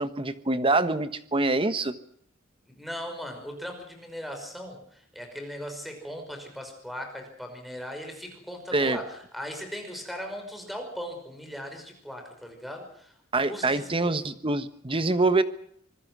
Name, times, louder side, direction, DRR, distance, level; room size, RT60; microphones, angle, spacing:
voice 1, 0.0-1.9 8.7-9.0 13.3-15.4, right 2 dB, 25° right, 11 dB, 1.3 m, -25 dB
voice 2, 2.7-13.1 13.4-14.1, equal, ahead, 5 dB, 5.5 m, -38 dB
25.5 x 20.5 x 6.2 m, 0.69 s
head